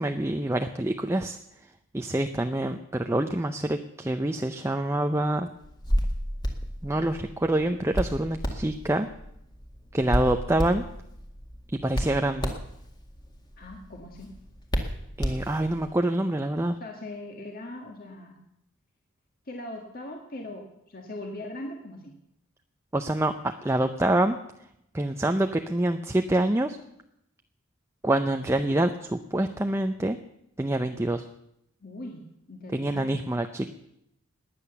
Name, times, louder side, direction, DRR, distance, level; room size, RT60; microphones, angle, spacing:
voice 1, 0.0-1.4 1.9-5.5 6.8-9.1 9.9-10.8 11.7-12.5 15.2-16.8 22.9-23.3 23.6-24.4 24.9-26.8 28.0-30.2 30.6-31.2 32.7-33.7, right 1 dB, 10° right, 6 dB, 0.6 m, -26 dB
Hands, 5.6-15.9, equal, 20° left, 1.9 m, -32 dB
voice 2, 13.6-14.4 16.8-18.3 19.5-22.1 31.8-33.2, left 1 dB, 40° left, 1 dB, 1.8 m, -40 dB
18.5 x 10.5 x 7.0 m, 0.79 s
head